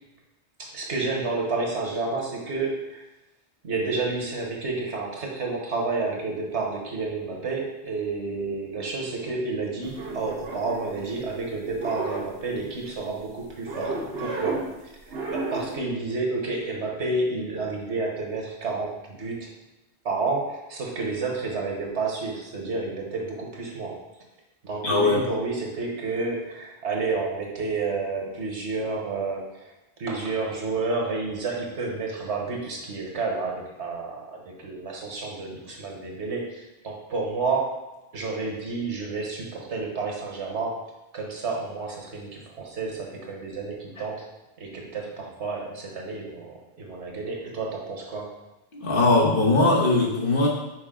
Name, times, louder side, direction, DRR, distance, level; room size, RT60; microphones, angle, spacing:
voice 1, 0.6-3.0 3.6-14.9 15.3-19.5 20.0-24.0 24.6-29.7 30.0-37.8 38.1-40.8 41.1-44.3 44.6-48.3, right 3 dB, 85° right, 0 dB, 1.5 m, -30 dB
sound 1, 9.8-11.4 11.6-12.9 13.7-14.8 15.1-15.8, right 3 dB, 70° right, 1.3 m, -33 dB
voice 2, 24.8-25.2 48.8-50.5, left 2 dB, 55° left, -3 dB, 1.4 m, -20 dB
6.3 x 4.5 x 3.7 m, 1.0 s
omnidirectional pair, 1.1 m